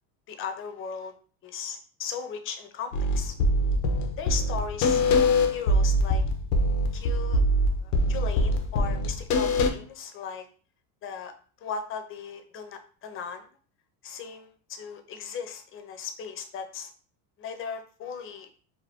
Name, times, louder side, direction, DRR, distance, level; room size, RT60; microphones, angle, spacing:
voice 1, 0.3-1.1 1.4-3.3 4.2-6.2 6.9-7.4 7.8-10.5 11.0-11.3 11.6-13.4 14.0-16.9 17.4-18.5, left 6 dB, 30° left, 7 dB, 0.4 m, -37 dB
sound 1, 2.9-9.7, left 1 dB, 90° left, 0.6 m, -23 dB
2.8 x 2.2 x 3.3 m, 0.42 s
supercardioid pair, 120°, 46 cm